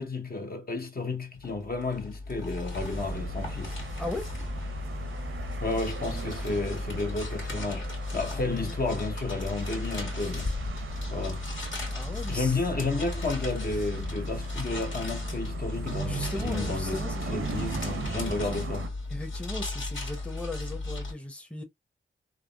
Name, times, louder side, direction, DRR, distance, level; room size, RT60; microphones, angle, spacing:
voice 1, 0.0-3.8 5.6-7.9 8.1-10.6 11.1-11.4 12.3-17.0 17.3-18.9, left 3 dB, 45° left, 0.9 m, -32 dB
sound 1, 1.4-21.1, left 2 dB, 65° left, 1.7 m, -35 dB
sound 2, 2.7-18.9, right 5 dB, 80° right, 0.8 m, -39 dB
voice 2, 8.3-8.8 11.9-12.6 16.0-17.4 19.1-21.6, left 2 dB, 5° left, 0.8 m, -37 dB
3.4 x 2.1 x 2.4 m
cardioid pair, 45°, 21 cm